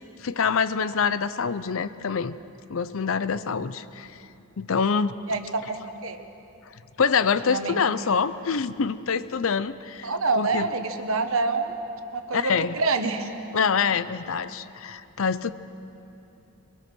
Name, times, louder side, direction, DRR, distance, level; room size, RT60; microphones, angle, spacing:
voice 1, 0.2-2.4 2.7-4.1 4.6-5.2 7.0-10.7 12.3-12.8 13.5-15.5, left 6 dB, 65° left, 15 dB, 0.6 m, -25 dB
voice 2, 5.3-5.8 6.0-6.2 7.4-7.8 10.0-11.7 12.1-13.3, right 3 dB, 70° right, 7 dB, 1.3 m, -26 dB
23.0 x 22.0 x 6.2 m, 2.9 s
head